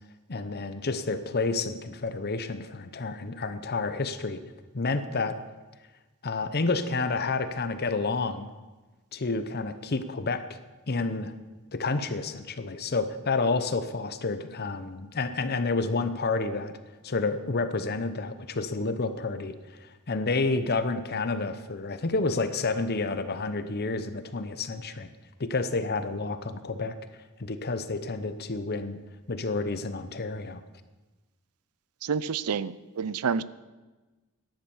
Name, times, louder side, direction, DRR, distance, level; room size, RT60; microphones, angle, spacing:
voice 1, 0.3-4.4 4.7-5.4 6.2-8.5 9.1-10.4 10.9-11.3 11.7-16.7 17.0-25.1 25.4-27.0 27.4-29.0 29.3-30.6, left 3 dB, 45° left, 11 dB, 0.8 m, -29 dB
voice 2, 32.0-33.4, right 6 dB, 85° right, 18 dB, 0.5 m, -29 dB
13.5 x 10.5 x 7.1 m, 1.2 s
head